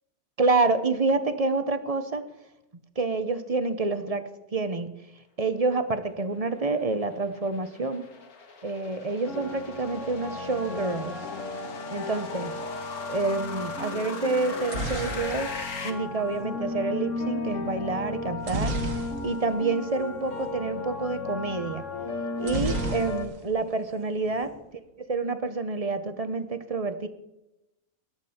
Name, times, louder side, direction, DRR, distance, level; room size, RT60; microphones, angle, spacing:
voice 1, 0.4-2.2 3.0-4.2 4.5-4.9 5.4-8.1 8.6-11.2 11.9-12.6 13.1-15.5 15.8-18.8 19.2-21.8 22.4-24.5 25.0-27.1, right 3 dB, 30° right, 10 dB, 0.8 m, -28 dB
sound 1, 6.3-15.9, left 4 dB, 80° left, 2.0 m, -40 dB
sound 2, 9.3-23.3, left 3 dB, 55° left, 1.8 m, -35 dB
sound 3, 14.4-16.5 18.4-19.6 19.9-20.0 20.3-20.5 22.4-23.6 23.9-24.5, right 2 dB, 60° right, 1.8 m, -32 dB
23.0 x 8.3 x 4.4 m, 0.93 s
omnidirectional pair, 1.6 m